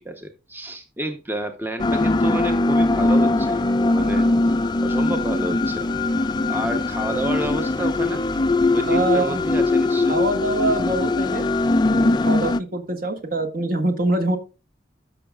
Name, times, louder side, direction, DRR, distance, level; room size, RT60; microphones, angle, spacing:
voice 1, 0.0-4.6 4.8-8.2 8.7-10.2, right 1 dB, 10° right, 6 dB, 0.8 m, -30 dB
sound 1, 1.8-12.6, left 2 dB, 25° left, 0.4 m, -21 dB
voice 2, 8.9-9.4 10.1-11.5 11.9-14.4, right 2 dB, 50° right, 6 dB, 1.6 m, -24 dB
13.5 x 6.3 x 2.3 m, 0.31 s
head